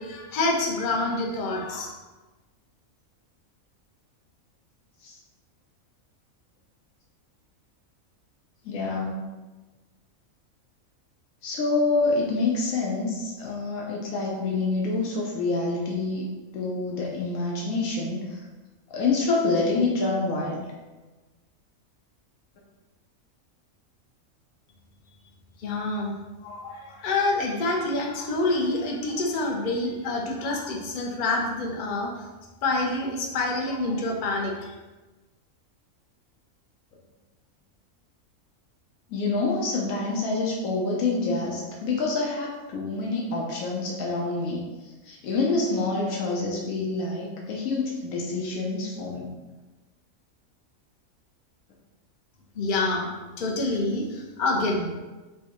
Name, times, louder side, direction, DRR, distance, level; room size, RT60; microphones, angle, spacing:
voice 1, 0.0-2.0 25.6-26.1 26.4-32.1 32.6-34.7 52.5-53.1 53.4-54.8, left 2 dB, 55° left, 0 dB, 0.5 m, -27 dB
voice 2, 8.6-9.3 11.4-16.2 16.5-18.4 18.9-20.6 39.1-49.3, left 3 dB, 85° left, -3 dB, 1.1 m, -27 dB
4.4 x 2.2 x 2.9 m, 1.2 s
omnidirectional pair, 1.4 m